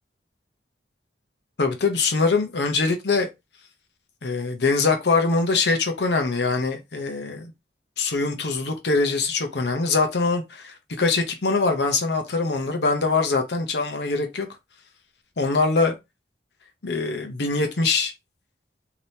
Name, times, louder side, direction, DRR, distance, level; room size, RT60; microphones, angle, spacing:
voice 1, 1.6-3.3 4.2-7.5 8.0-14.5 15.4-16.0 16.8-18.1, left 3 dB, 70° left, 0.7 m, -23 dB
3.4 x 2.8 x 2.7 m
head